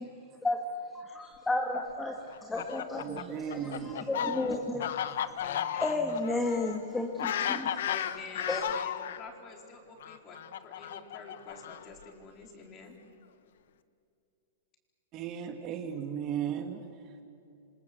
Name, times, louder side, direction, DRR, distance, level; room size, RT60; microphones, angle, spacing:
voice 1, 0.9-2.2 2.5-7.7 8.5-8.6, left 2 dB, 5° left, 2 dB, 2.0 m, -33 dB
Fowl, 2.3-9.2 10.0-12.0, left 10 dB, 70° left, 1.2 m, -34 dB
voice 2, 3.0-4.0 15.1-16.8, right 9 dB, 30° right, 6 dB, 1.8 m, -36 dB
voice 3, 5.4-5.7 7.9-10.4 10.6-13.0, left 4 dB, 25° left, 2 dB, 4.4 m, -48 dB
28.0 x 25.5 x 8.1 m, 2.6 s
hypercardioid pair, 155°, 0 cm